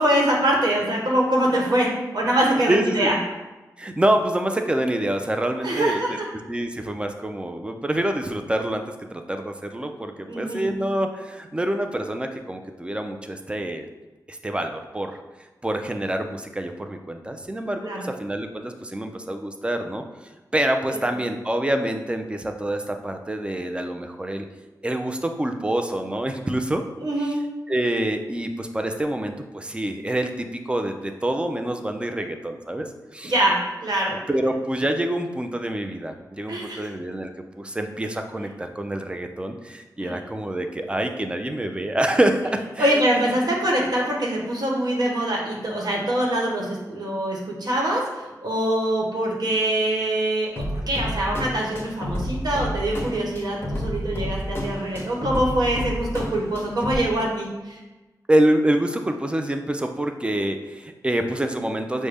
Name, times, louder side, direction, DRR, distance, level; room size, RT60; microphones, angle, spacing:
voice 1, 0.0-3.1 5.6-6.1 10.3-10.7 17.8-18.1 20.9-21.0 27.0-27.4 33.2-34.2 36.5-36.8 40.0-40.2 42.8-57.8, right 1 dB, 70° right, -2 dB, 1.1 m, -24 dB
voice 2, 2.7-3.1 3.8-6.2 6.5-8.8 9.1-13.9 14.3-15.2 15.6-20.0 20.5-24.5 24.8-26.8 27.7-32.9 33.1-33.3 34.3-37.3 37.6-43.0 58.3-62.1, right 1 dB, 15° right, 6 dB, 0.4 m, -26 dB
sound 1, 50.6-57.0, equal, 35° left, 0.8 m, -30 dB
6.3 x 2.1 x 3.4 m, 1.1 s
wide cardioid pair, 100°, 7 cm